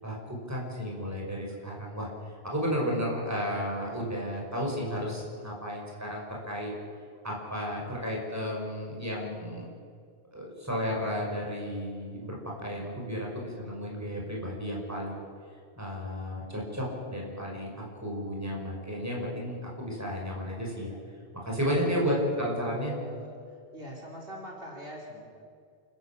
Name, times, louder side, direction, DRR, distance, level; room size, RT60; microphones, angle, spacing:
voice 1, 0.0-6.7 7.2-9.7 10.3-15.2 15.7-21.0 21.4-22.9, equal, 15° right, -2 dB, 5.6 m, -33 dB
voice 2, 21.7-22.1 22.6-23.3 23.7-25.3, equal, 60° right, -2 dB, 4.3 m, -41 dB
28.0 x 15.0 x 8.7 m, 2.2 s
omnidirectional pair, 1.1 m